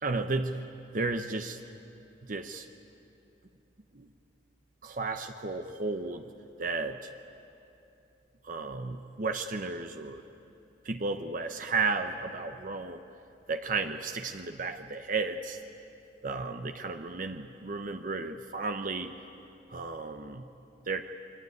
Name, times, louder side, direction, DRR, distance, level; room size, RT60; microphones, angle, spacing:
voice 1, 0.0-0.6 0.9-1.6 2.2-2.7 3.9-4.1 4.8-6.3 6.6-7.1 8.4-10.2 10.8-13.0 13.5-15.6 16.2-19.1 19.7-20.5 20.9-21.0, right 3 dB, 50° right, 6 dB, 0.9 m, -33 dB
26.5 x 23.5 x 9.5 m, 2.9 s
head